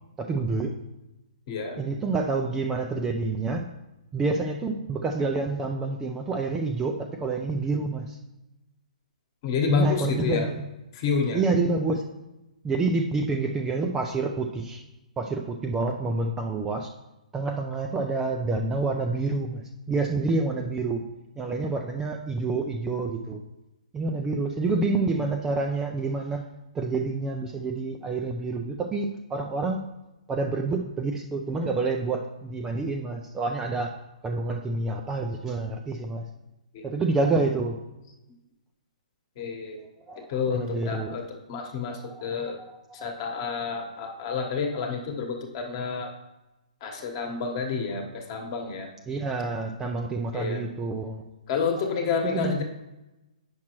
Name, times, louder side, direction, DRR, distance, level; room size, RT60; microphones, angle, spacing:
voice 1, 0.2-0.7 1.8-3.7 4.1-8.2 9.7-10.6 11.3-12.0 12.6-14.8 15.2-16.9 17.3-19.6 19.9-21.0 21.4-23.4 23.9-26.4 26.7-29.9 30.3-33.9 34.2-36.2 36.8-37.8 40.1-41.2 42.0-42.7 47.0-47.1 49.1-51.2 52.3-52.5, right 3 dB, 10° right, 2 dB, 0.3 m, -28 dB
voice 2, 1.5-1.8 9.4-10.5 10.9-11.4 36.7-36.8 39.4-39.8 40.3-42.6 42.9-46.1 46.8-48.9 50.3-50.6 51.5-52.6, left 5 dB, 35° left, 3 dB, 1.1 m, -29 dB
8.5 x 6.0 x 3.0 m, 0.97 s
hypercardioid pair, 160°, 4 cm